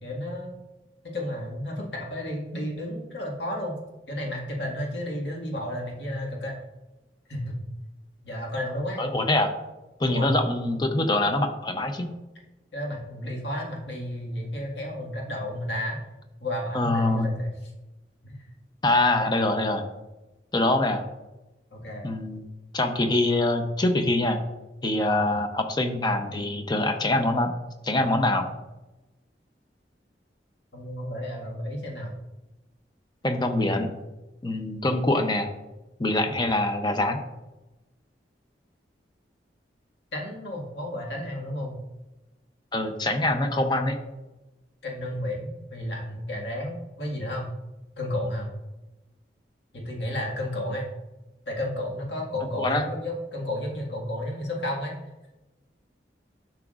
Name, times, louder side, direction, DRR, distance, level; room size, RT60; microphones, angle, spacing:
voice 1, 0.0-0.6 1.1-3.7 4.1-6.5 7.3-7.6 8.2-9.0 10.0-10.5 12.7-16.0 16.4-17.7 18.2-18.4 19.2-19.3 21.7-22.1 25.1-25.4 30.7-32.1 36.1-36.3 40.1-41.8 44.8-47.5 48.0-48.5 49.7-50.9 51.5-54.9, left 1 dB, 80° left, -2 dB, 1.8 m, -32 dB
voice 2, 9.0-9.5 10.0-12.1 16.7-17.3 18.8-19.8 20.5-21.0 22.0-22.4 22.7-24.4 24.8-27.5 27.8-28.5 33.2-33.9 34.4-35.5 36.0-37.2 42.7-44.0 52.6-52.8, left 2 dB, 25° left, 6 dB, 0.7 m, -24 dB
12.0 x 5.9 x 2.5 m, 1.0 s
head